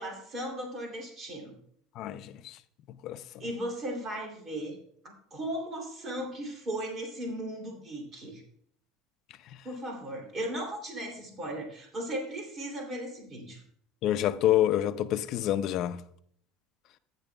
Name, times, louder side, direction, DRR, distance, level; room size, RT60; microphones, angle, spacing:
voice 1, 0.0-1.6 3.4-4.8 5.0-8.4 9.6-13.6, right 1 dB, 30° right, 2.8 m, -37 dB
voice 2, 2.0-2.5 3.0-3.2 14.0-16.0, left 12 dB, 50° left, 0.5 m, -27 dB
14.5 x 9.9 x 2.3 m
cardioid pair, 140°, 0 cm